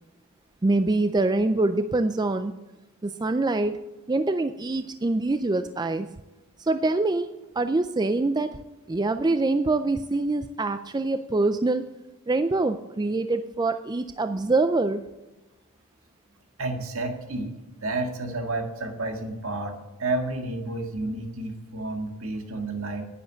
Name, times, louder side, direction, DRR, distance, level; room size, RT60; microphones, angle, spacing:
voice 1, 0.6-2.5 3.0-3.8 4.1-6.1 6.6-8.5 8.9-11.9 12.3-15.1, right 2 dB, 20° right, 10 dB, 0.3 m, -25 dB
voice 2, 16.6-17.5 17.8-23.0, right 2 dB, 65° right, 5 dB, 1.9 m, -31 dB
10.5 x 9.5 x 8.2 m, 1.1 s
head